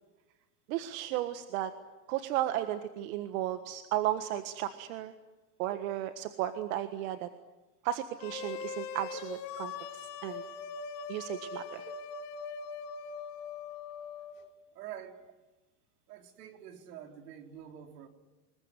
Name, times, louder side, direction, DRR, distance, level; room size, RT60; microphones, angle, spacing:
voice 1, 0.7-1.7 2.1-5.1 5.6-7.3 7.8-10.4 11.1-11.9, right 13 dB, 60° right, 9 dB, 1.6 m, -34 dB
sound 1, 8.2-14.4, left 5 dB, 80° left, 4.4 m, -41 dB
voice 2, 14.7-15.3 16.1-18.1, right 10 dB, 80° right, 4 dB, 4.3 m, -47 dB
26.5 x 21.5 x 9.7 m, 1.2 s
supercardioid pair, 160°, 47 cm